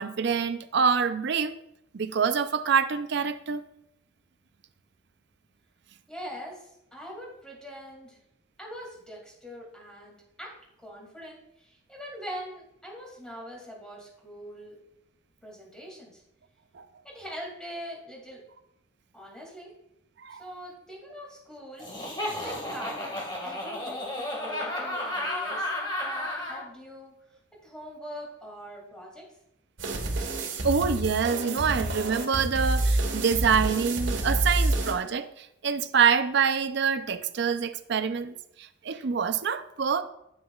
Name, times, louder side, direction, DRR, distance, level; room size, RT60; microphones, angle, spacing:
voice 1, 0.0-1.6 1.9-3.6 16.7-16.8 20.2-20.4 30.6-40.0, right 6 dB, 60° right, 0.5 m, -26 dB
voice 2, 6.1-8.2 8.6-10.5 10.8-14.8 15.4-16.2 17.0-18.4 19.1-19.7 20.3-21.9 22.4-25.7 26.0-27.1 27.6-29.3, equal, 5° left, 2.4 m, -42 dB
Laughter, 21.8-26.6, left 1 dB, 25° left, 1.8 m, -32 dB
sound 1, 29.8-34.9, right 2 dB, 80° right, 1.5 m, -28 dB
9.4 x 9.1 x 2.4 m
head